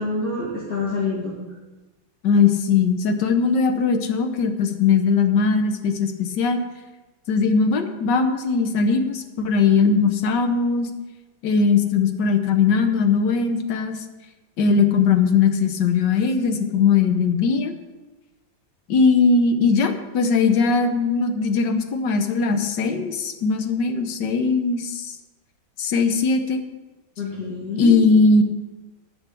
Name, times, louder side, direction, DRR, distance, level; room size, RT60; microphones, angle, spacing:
voice 1, 0.0-1.3 27.2-28.0, left 2 dB, 50° left, -7 dB, 2.5 m, -27 dB
voice 2, 2.2-6.6 7.3-10.9 11.4-14.0 14.6-17.7 18.9-25.1 25.8-26.6 27.8-28.4, left 5 dB, 65° left, 7 dB, 1.5 m, -19 dB
10.0 x 6.0 x 8.3 m, 1.2 s
omnidirectional pair, 2.1 m